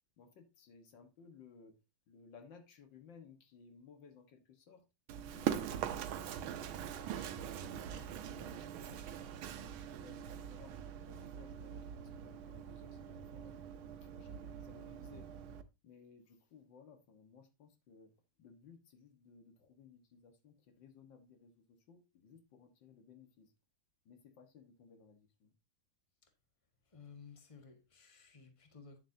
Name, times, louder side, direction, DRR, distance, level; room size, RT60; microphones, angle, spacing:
voice 1, 0.2-1.8 2.1-4.8 5.3-6.6 7.1-10.8 11.1-15.3 15.8-18.1 18.4-23.5 24.1-25.5, left 5 dB, 65° left, 2.1 m, -60 dB
Run, 5.1-15.6, right 9 dB, 80° right, 1.6 m, -43 dB
voice 2, 26.8-29.0, left 5 dB, 15° left, 1.4 m, -56 dB
10.0 x 7.3 x 2.7 m
omnidirectional pair, 2.3 m